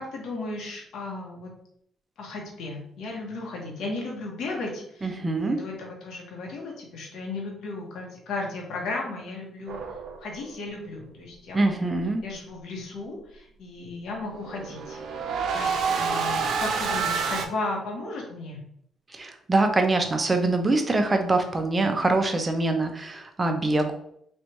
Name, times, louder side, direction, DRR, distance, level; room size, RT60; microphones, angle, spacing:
voice 1, 0.0-1.5 2.2-9.8 10.2-15.0 15.5-18.6, left 2 dB, 75° left, -1 dB, 1.3 m, -35 dB
voice 2, 5.0-5.6 11.5-12.2 19.1-23.9, right 2 dB, 25° right, 5 dB, 0.7 m, -24 dB
sound 1, 9.7-10.6 14.3-17.5, right 5 dB, 75° right, 0.6 m, -28 dB
3.3 x 2.7 x 4.5 m, 0.69 s
cardioid pair, 90°, 0 cm